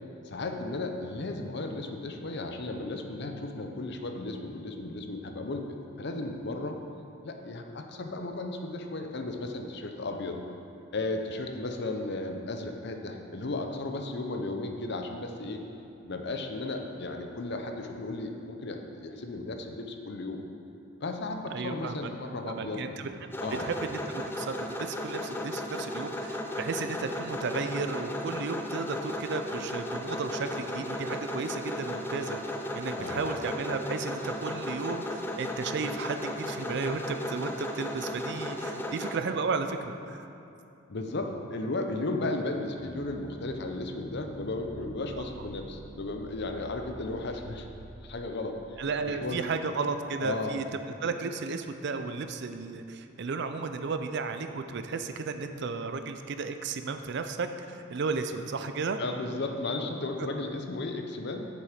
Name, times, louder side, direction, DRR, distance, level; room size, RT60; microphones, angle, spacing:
voice 1, 0.2-6.8 7.2-10.4 10.9-15.6 16.1-20.4 21.0-23.0 23.4-23.7 33.0-33.3 40.9-47.7 48.0-48.8 49.1-49.4 50.2-50.6 59.0-61.5, left 2 dB, 55° left, 4 dB, 0.7 m, -35 dB
voice 2, 21.5-22.1 22.4-23.1 23.6-40.2 45.2-45.3 48.8-50.6 51.0-59.0, right 4 dB, 55° right, 8 dB, 0.5 m, -34 dB
sound 1, 23.3-39.2, left 1 dB, 10° left, 0.4 m, -35 dB
sound 2, 42.7-49.9, right 2 dB, 80° left, 1.2 m, -48 dB
7.6 x 6.9 x 5.0 m, 2.6 s
head